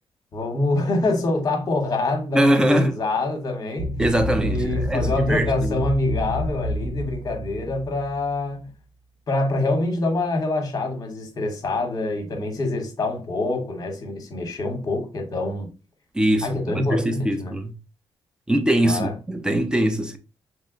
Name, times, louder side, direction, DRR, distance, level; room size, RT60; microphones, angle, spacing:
voice 1, 0.3-3.9 4.4-8.7 9.3-15.7 16.4-17.6 18.8-19.1, left 2 dB, 40° left, 1.0 m, -25 dB
voice 2, 2.3-2.9 4.0-5.8 16.1-17.7 18.5-20.2, right 1 dB, 10° right, 0.4 m, -22 dB
sound 1, 3.8-8.5, equal, 60° right, 0.5 m, -28 dB
3.0 x 2.1 x 3.6 m
cardioid pair, 125°, 10 cm